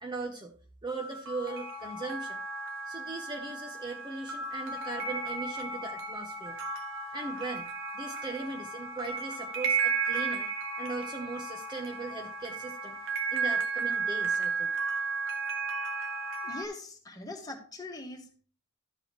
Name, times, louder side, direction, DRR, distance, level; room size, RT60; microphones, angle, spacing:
voice 1, 0.0-0.6 0.8-2.4 2.9-6.6 7.1-7.7 7.9-10.5 10.8-13.0 13.3-14.7, right 3 dB, 20° right, 3 dB, 0.8 m, -39 dB
sound 1, 0.9-16.6, right 4 dB, 60° right, 1.4 m, -34 dB
voice 2, 16.4-18.4, left 2 dB, 15° left, 2 dB, 1.7 m, -42 dB
12.5 x 7.6 x 3.1 m, 0.41 s
head